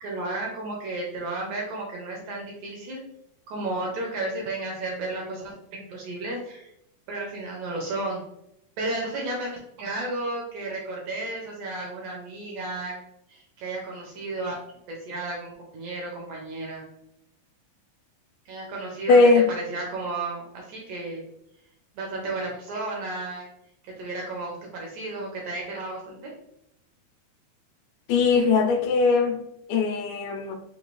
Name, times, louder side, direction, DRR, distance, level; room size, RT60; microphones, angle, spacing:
voice 1, 0.0-3.0 3.5-6.7 7.1-8.2 8.8-12.9 13.3-14.6 14.9-16.8 18.5-19.2 19.6-21.3 22.0-23.5 23.8-26.3, right 2 dB, 75° right, -2 dB, 1.9 m, -33 dB
voice 2, 19.1-19.5 28.1-29.4 29.7-30.5, left 4 dB, 80° left, 5 dB, 2.2 m, -19 dB
5.1 x 2.7 x 3.1 m, 0.79 s
omnidirectional pair, 4.0 m